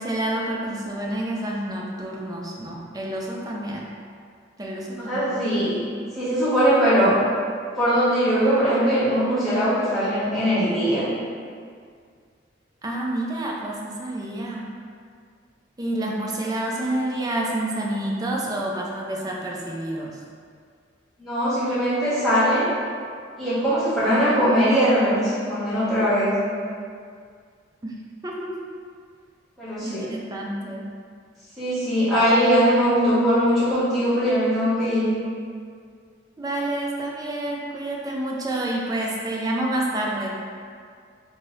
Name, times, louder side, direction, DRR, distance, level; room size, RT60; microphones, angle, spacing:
voice 1, 0.0-3.8 4.6-5.6 12.8-14.7 15.8-20.1 27.8-28.0 28.2-28.7 29.8-30.9 36.4-40.4, right 1 dB, 20° right, -2 dB, 0.3 m, -28 dB
voice 2, 5.0-5.8 6.1-7.2 7.7-11.1 21.2-22.7 23.4-26.4 29.6-30.1 31.6-35.1, equal, ahead, -16 dB, 1.5 m, -21 dB
2.9 x 2.6 x 3.1 m, 2.1 s
head